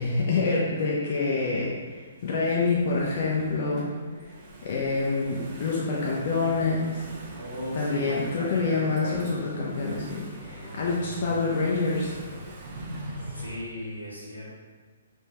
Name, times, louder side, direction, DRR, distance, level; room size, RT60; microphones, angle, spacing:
voice 1, 0.0-3.9 4.6-6.9 7.8-12.1, left 3 dB, 45° left, -4 dB, 0.5 m, -26 dB
Engine / Mechanisms, 1.4-13.6, right 1 dB, 35° right, 0.6 m, -42 dB
voice 2, 7.3-9.5 13.2-14.5, equal, 90° left, -7 dB, 1.2 m, -37 dB
3.5 x 3.0 x 2.9 m, 1.4 s
figure-of-eight pair, 125°, 0 cm